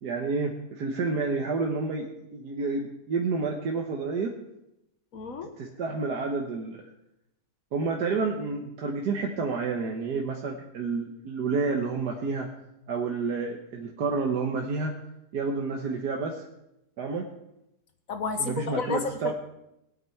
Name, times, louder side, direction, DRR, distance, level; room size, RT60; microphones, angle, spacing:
voice 1, 0.0-4.3 5.6-6.9 7.7-12.5 12.9-15.0 15.3-16.5 17.0-17.3 18.4-19.3, right 4 dB, 75° right, 1 dB, 1.7 m, -29 dB
voice 2, 5.1-5.5 18.1-19.3, left 4 dB, 55° left, 7 dB, 1.6 m, -31 dB
19.5 x 8.8 x 4.5 m, 0.85 s
omnidirectional pair, 1.8 m